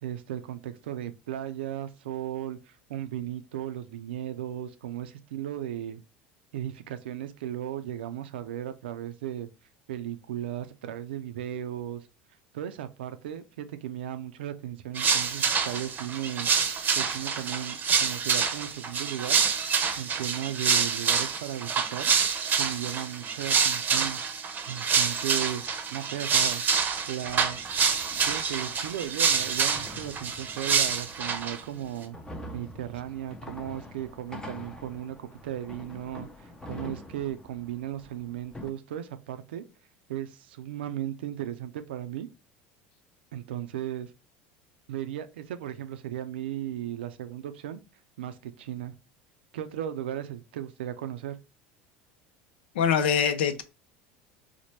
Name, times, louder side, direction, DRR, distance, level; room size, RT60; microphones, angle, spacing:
voice 1, 0.0-6.0 6.5-9.5 9.9-12.0 12.5-19.4 20.0-22.1 22.5-24.2 24.7-26.6 27.1-27.6 28.3-32.2 32.5-39.6 40.1-42.3 43.3-44.1 44.9-47.8 48.2-48.9 49.5-51.4, right 11 dB, 90° right, 0.4 m, -36 dB
sound 1, 14.9-31.6, right 6 dB, 35° right, 0.7 m, -27 dB
sound 2, 27.2-38.7, left 1 dB, 15° left, 0.6 m, -46 dB
voice 2, 52.8-53.6, left 7 dB, 85° left, 0.5 m, -23 dB
4.2 x 2.1 x 3.1 m
supercardioid pair, 95°, 5 cm